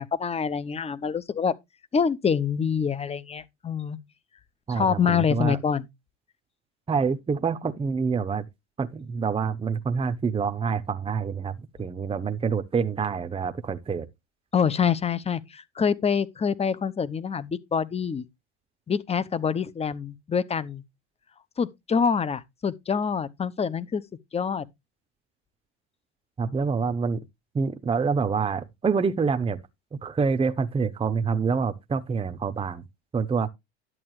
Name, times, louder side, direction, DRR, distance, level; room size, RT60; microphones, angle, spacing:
voice 1, 0.0-1.5 1.9-4.0 4.7-5.9 14.5-18.2 18.9-20.8 21.6-24.0 24.3-24.6, left 6 dB, 20° left, 0.8 m, -26 dB
voice 2, 4.7-5.6 6.9-8.5 8.8-14.1 26.4-27.2 27.5-29.6 29.9-32.8 33.1-33.5, right 5 dB, 15° right, 0.8 m, -26 dB
11.0 x 8.4 x 3.2 m
supercardioid pair, 100°, 34 cm